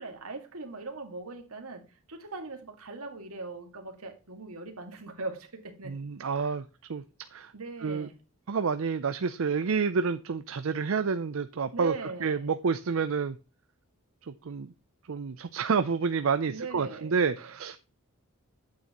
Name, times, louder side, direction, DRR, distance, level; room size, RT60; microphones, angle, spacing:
voice 1, 0.0-6.0 6.4-6.5 7.5-8.1 11.7-12.5 16.5-17.1, right 3 dB, 90° right, 2.0 m, -40 dB
voice 2, 5.8-7.0 7.3-7.5 7.8-8.1 8.5-13.4 14.3-14.7 15.1-17.8, right 5 dB, 70° right, 0.5 m, -29 dB
8.8 x 8.4 x 3.0 m
head